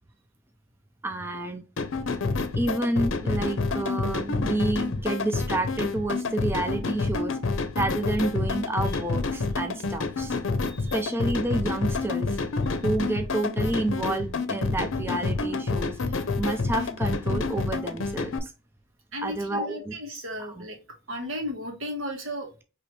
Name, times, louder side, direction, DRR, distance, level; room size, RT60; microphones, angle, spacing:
voice 1, 1.0-1.6 2.5-7.4 7.8-10.4 10.9-12.4 12.8-18.5 19.2-19.9 20.6-20.7, right 2 dB, 10° right, 0.3 m, -29 dB
sound 1, 1.8-18.4, left 3 dB, 70° left, 0.6 m, -28 dB
voice 2, 10.6-10.9 12.6-12.8 19.1-20.8 21.1-22.6, equal, 80° right, 1.5 m, -35 dB
4.6 x 3.0 x 3.1 m
head